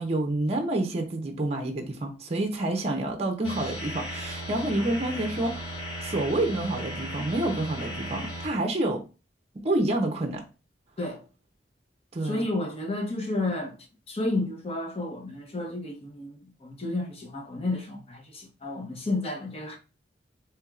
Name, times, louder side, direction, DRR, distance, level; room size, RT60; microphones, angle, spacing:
voice 1, 0.0-9.0 9.6-10.4 12.1-12.5, right 2 dB, 35° right, 0.6 m, -28 dB
sound 1, 3.4-8.5, equal, 55° left, 2.1 m, -36 dB
voice 2, 12.2-13.8 14.1-19.8, left 2 dB, 35° left, 0.9 m, -31 dB
4.5 x 3.1 x 2.3 m
head